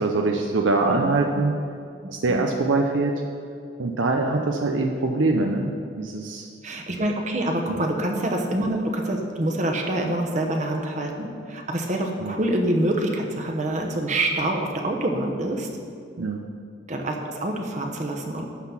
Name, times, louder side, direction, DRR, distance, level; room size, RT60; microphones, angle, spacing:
voice 1, 0.0-1.5 2.1-3.1 3.8-5.7 6.0-6.5 7.7-7.8 12.2-12.4 16.2-16.5, right 3 dB, 90° right, 2 dB, 0.7 m, -23 dB
voice 2, 6.6-15.7 16.9-18.4, right 1 dB, 40° right, 2 dB, 1.0 m, -26 dB
11.5 x 4.0 x 7.2 m, 2.4 s
head